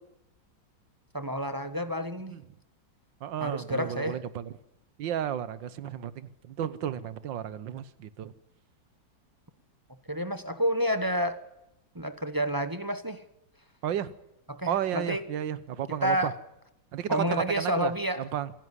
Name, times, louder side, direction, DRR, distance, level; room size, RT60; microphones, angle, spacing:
voice 1, 1.1-2.3 3.4-4.2 10.1-11.4 11.9-13.2 14.5-15.2 15.9-16.3 17.1-18.2, equal, 20° right, 10 dB, 0.6 m, -29 dB
voice 2, 3.2-4.5 5.0-8.3 13.8-14.1 14.7-16.3 16.9-18.5, right 10 dB, 75° right, 15 dB, 1.7 m, -33 dB
25.5 x 11.0 x 9.7 m, 0.87 s
omnidirectional pair, 2.0 m